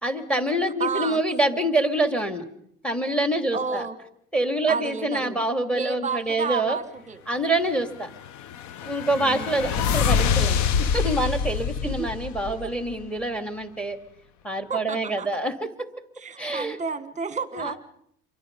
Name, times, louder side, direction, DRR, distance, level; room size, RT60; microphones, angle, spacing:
voice 1, 0.0-2.4 2.8-3.8 4.3-6.8 7.3-8.1 8.8-14.0 14.4-15.7 16.4-16.8 17.5-17.8, right 1 dB, 5° left, 7 dB, 2.6 m, -26 dB
voice 2, 0.8-1.2 3.5-4.0 4.7-5.4 5.7-7.2 9.2-9.7 11.8-12.1 12.5-12.7 14.7-15.3 16.2-17.8, right 5 dB, 25° right, 12 dB, 1.6 m, -31 dB
sound 1, 8.1-13.0, left 7 dB, 65° left, 1.1 m, -26 dB
28.0 x 23.5 x 5.4 m, 0.70 s
cardioid pair, 130°, 30 cm